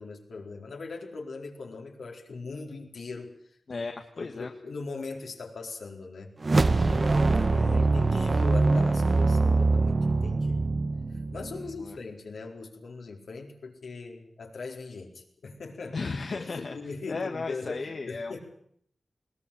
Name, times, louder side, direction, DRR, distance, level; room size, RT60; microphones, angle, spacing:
voice 1, 0.0-3.4 3.7-3.9 4.1-6.3 6.8-10.6 11.3-16.0 16.3-18.4, left 4 dB, 80° left, 1 dB, 4.4 m, -40 dB
voice 2, 3.7-4.5 7.8-8.4 11.6-12.0 15.9-16.8 17.1-18.4, left 4 dB, 60° left, 4 dB, 1.7 m, -36 dB
sound 1, 6.4-11.8, right 3 dB, 45° right, 1.3 m, -23 dB
21.0 x 19.5 x 8.8 m, 0.66 s
wide cardioid pair, 75°, 0 cm